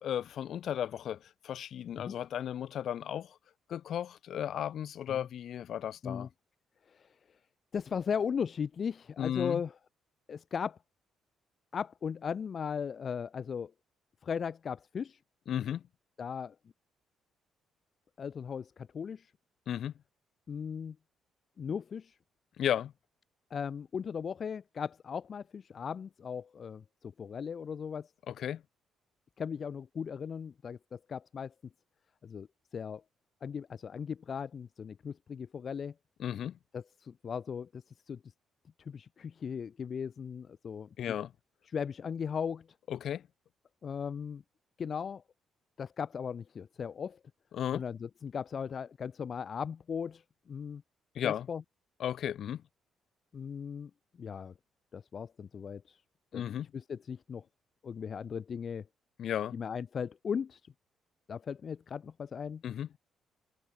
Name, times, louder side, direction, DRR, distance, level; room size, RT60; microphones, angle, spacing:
voice 1, 0.0-3.4 3.7-6.3 9.2-9.6 15.5-15.8 19.7-19.9 22.6-22.9 28.3-28.6 36.2-36.6 41.0-41.3 42.9-43.2 47.5-47.8 51.1-51.5 52.0-52.6 56.3-56.7 59.2-59.5 62.6-62.9, left 10 dB, 65° left, 1.4 m, -34 dB
voice 2, 6.8-7.4 7.7-9.7 10.3-10.8 11.7-13.7 14.2-15.2 16.2-16.6 18.2-19.3 20.5-21.0 21.6-22.2 23.5-28.1 29.4-31.5 32.2-33.0 33.4-35.9 36.7-38.3 38.8-41.2 41.6-42.7 43.8-44.4 44.8-45.2 45.8-47.2 47.7-50.8 51.2-51.6 53.3-53.9 54.2-54.5 54.9-56.0 56.3-57.4 57.8-58.9 59.5-60.7 61.3-62.6, left 7 dB, 50° left, 0.7 m, -37 dB
supercardioid pair, 60°, 0 cm